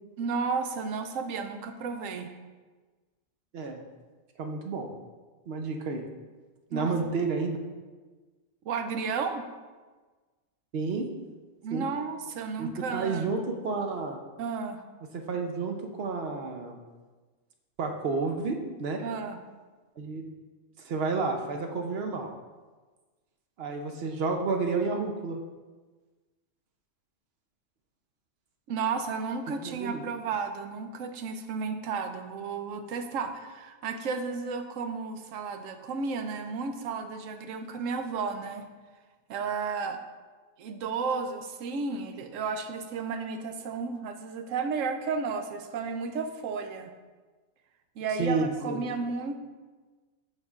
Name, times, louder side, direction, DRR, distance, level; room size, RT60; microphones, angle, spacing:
voice 1, 0.2-2.3 6.7-6.9 8.6-9.5 11.6-13.3 14.4-14.8 19.0-19.4 28.7-38.7 39.3-40.0 40.6-46.9 48.0-49.4, right 5 dB, 85° right, 7 dB, 1.0 m, -33 dB
voice 2, 4.4-4.9 5.5-6.0 6.7-7.6 10.7-11.1 11.7-11.9 12.6-14.2 15.1-16.8 17.8-19.0 20.0-20.3 20.8-22.3 23.6-25.4 29.6-30.0 48.2-48.9, right 4 dB, 60° right, 4 dB, 0.8 m, -30 dB
11.5 x 4.4 x 2.4 m, 1.3 s
omnidirectional pair, 1.3 m